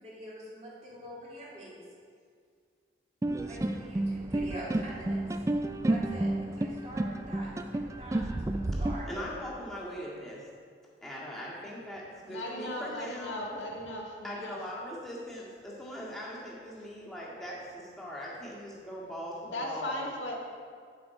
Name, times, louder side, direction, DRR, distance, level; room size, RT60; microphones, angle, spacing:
voice 1, 0.0-1.7 3.4-5.4 5.9-7.5 8.0-9.1, right 1 dB, 35° right, -7 dB, 2.5 m, -45 dB
sound 1, 3.2-8.9, right 1 dB, 15° right, 0.3 m, -31 dB
voice 2, 9.0-10.4 11.0-13.6 14.2-20.0, equal, ahead, -7 dB, 1.9 m, -40 dB
voice 3, 12.2-14.6 19.4-20.3, left 1 dB, 85° left, -2 dB, 1.8 m, -37 dB
8.6 x 7.6 x 4.8 m, 2.1 s
head